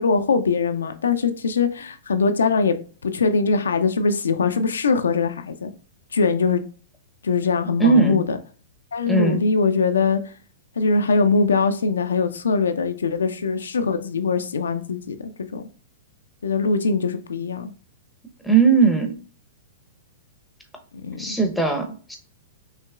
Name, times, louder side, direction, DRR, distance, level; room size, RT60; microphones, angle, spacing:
voice 1, 0.0-2.8 3.0-5.7 6.1-6.6 7.2-8.4 8.9-10.2 10.8-15.7 16.4-17.7 21.0-21.4, left 4 dB, 75° left, 0.5 m, -22 dB
voice 2, 7.8-8.2 9.1-9.4 18.4-19.1 21.2-22.2, right 5 dB, ahead, 0.8 m, -18 dB
5.5 x 2.9 x 2.3 m
figure-of-eight pair, 110°, 0 cm